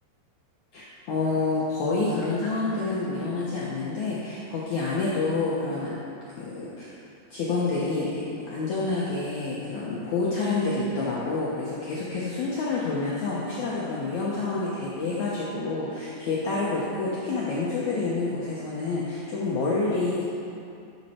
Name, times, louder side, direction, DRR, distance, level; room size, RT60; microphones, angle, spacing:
voice 1, 0.7-5.9 6.4-7.0 7.3-20.3, left 3 dB, 85° left, -7 dB, 1.6 m, -28 dB
13.0 x 6.6 x 4.4 m, 2.5 s
omnidirectional pair, 5.0 m